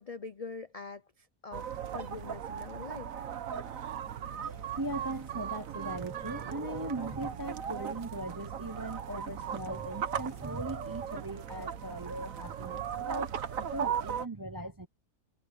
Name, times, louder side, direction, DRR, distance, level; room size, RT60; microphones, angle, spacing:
voice 1, 0.0-3.2, left 4 dB, 45° left, 0.4 m, -44 dB
sound 1, 1.5-14.3, right 8 dB, 65° right, 1.5 m, -37 dB
voice 2, 4.4-14.9, right 1 dB, 20° right, 0.5 m, -39 dB
omnidirectional pair, 1.5 m